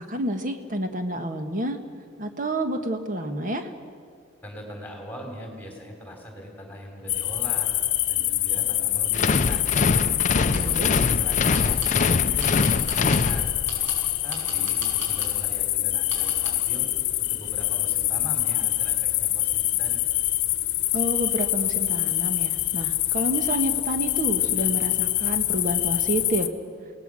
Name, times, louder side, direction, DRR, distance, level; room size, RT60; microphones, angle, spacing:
voice 1, 0.0-1.8 2.2-3.7 10.5-10.9 20.9-26.5, right 1 dB, 40° right, 6 dB, 1.6 m, -29 dB
voice 2, 4.4-7.7 8.1-9.6 10.3-10.8 11.1-13.6 14.2-16.9 17.2-20.0, equal, 10° left, 2 dB, 3.8 m, -41 dB
sound 1, 7.1-26.5, left 15 dB, 65° left, 1.0 m, -25 dB
sound 2, 9.1-13.9, left 3 dB, 40° left, 0.5 m, -24 dB
sound 3, 10.5-10.7 11.5-12.0 12.4-13.3 13.7-15.4 16.1-16.5, right 1 dB, 70° right, 6.5 m, -38 dB
27.5 x 19.0 x 6.4 m, 2.1 s
head